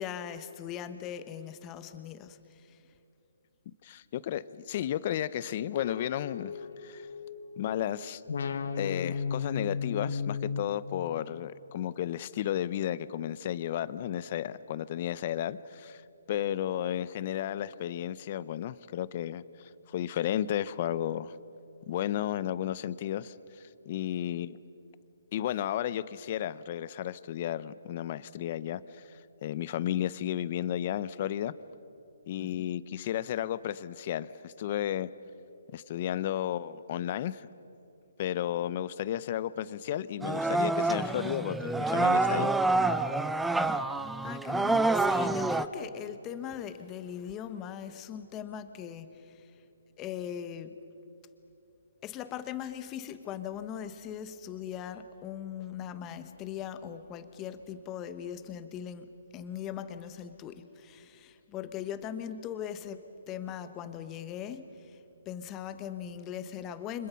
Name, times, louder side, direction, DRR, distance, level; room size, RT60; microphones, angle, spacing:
voice 1, 0.0-2.8 32.4-32.7 44.1-49.6 50.0-50.8 52.0-67.1, left 9 dB, 20° left, 11 dB, 1.1 m, -40 dB
voice 2, 3.8-6.5 6.8-7.1 7.6-8.2 8.8-16.0 16.3-21.3 21.9-23.3 23.9-24.6 25.3-28.8 29.4-31.5 32.3-35.1 35.7-37.5 38.2-42.5, left 11 dB, 40° left, 17 dB, 0.7 m, -33 dB
sound 1, 5.8-7.8 8.3-11.5, left 6 dB, 65° left, 1.5 m, -35 dB
sound 2, 40.2-45.7, right 2 dB, 5° right, 0.5 m, -27 dB
29.5 x 25.5 x 5.7 m, 2.9 s
hypercardioid pair, 150°, 0 cm